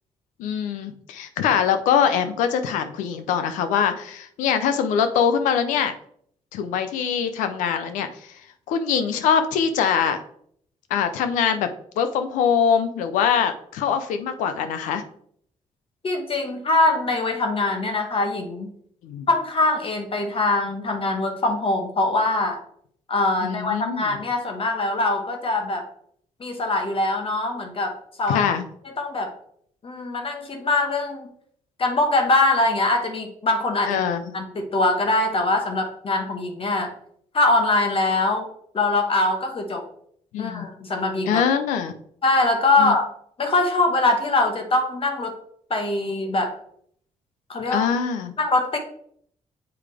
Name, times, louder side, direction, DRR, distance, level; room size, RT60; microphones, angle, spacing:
voice 1, 0.4-5.9 6.5-8.1 8.7-10.2 10.9-11.7 12.0-15.0 19.0-19.3 23.4-24.2 28.3-28.6 33.8-34.3 40.3-40.7 41.3-41.9 42.8-42.9 47.7-48.3, left 7 dB, 90° left, 9 dB, 0.6 m, -23 dB
voice 2, 16.0-18.7 19.3-22.6 23.1-25.9 26.4-28.4 28.8-29.3 29.8-31.3 31.8-34.0 34.3-36.9 37.3-38.5 38.7-39.8 40.4-41.4 42.2-43.1 43.4-45.3 45.7-46.5 47.5-47.9 48.4-48.8, left 2 dB, 45° left, 4 dB, 1.3 m, -23 dB
7.0 x 4.8 x 3.4 m, 0.65 s
supercardioid pair, 60°, 13 cm